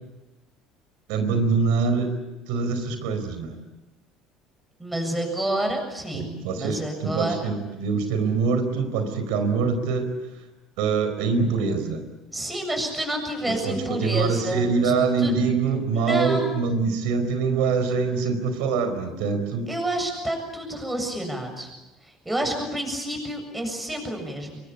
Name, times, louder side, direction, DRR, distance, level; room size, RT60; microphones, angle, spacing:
voice 1, 1.1-2.1 2.5-3.6 6.1-10.1 10.8-12.0 13.4-19.7, right 5 dB, 90° right, 8 dB, 4.6 m, -24 dB
voice 2, 4.8-6.3 6.6-7.5 12.3-14.9 15.2-15.3 15.9-16.6 19.7-21.7 22.0-24.6, right 1 dB, 10° right, 3 dB, 7.4 m, -29 dB
26.0 x 23.0 x 8.7 m, 1.0 s
cardioid pair, 135°, 0 cm